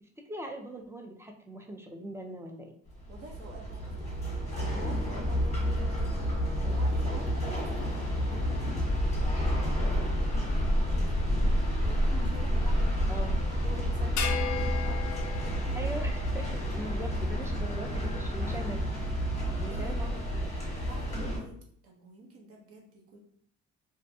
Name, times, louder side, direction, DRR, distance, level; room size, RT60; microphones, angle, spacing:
voice 1, 0.0-2.7 13.1-13.4 15.8-18.8 19.5-20.5, right 1 dB, 10° right, 2 dB, 0.4 m, -41 dB
sound 1, 2.9-21.4, equal, 20° left, 1.0 m, -29 dB
voice 2, 3.1-6.1 6.7-8.6 9.0-10.4 10.7-11.2 11.6-15.8 18.8-18.9 19.7-20.1 20.8-21.6 21.8-23.2, right 3 dB, 50° right, 0 dB, 0.8 m, -48 dB
sound 2, 3.8-11.4, left 1 dB, 85° right, 1.1 m, -52 dB
sound 3, 14.2-16.7, left 6 dB, 65° left, 0.4 m, -36 dB
2.6 x 2.1 x 2.6 m, 0.64 s
cardioid pair, 90°, 30 cm